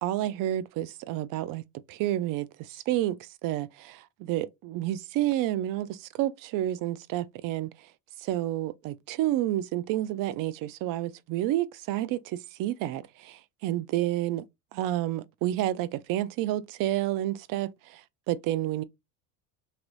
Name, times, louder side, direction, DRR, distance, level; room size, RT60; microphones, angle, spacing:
voice 1, 0.0-1.6 1.9-7.7 8.2-14.4 14.7-18.0 18.3-18.8, right 14 dB, 50° right, 0.4 m, -30 dB
2.8 x 2.6 x 3.1 m
supercardioid pair, 90°, 46 cm